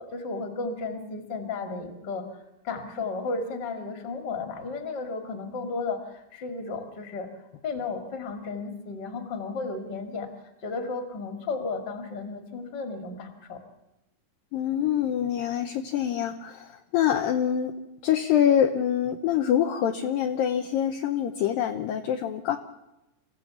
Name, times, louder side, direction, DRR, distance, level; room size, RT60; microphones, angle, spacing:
voice 1, 0.0-2.3 2.6-10.3 10.6-13.6, left 4 dB, 40° left, 6 dB, 1.6 m, -34 dB
voice 2, 14.5-17.7 18.0-22.6, left 9 dB, 80° left, 5 dB, 2.0 m, -25 dB
28.0 x 15.5 x 7.1 m, 0.96 s
omnidirectional pair, 5.2 m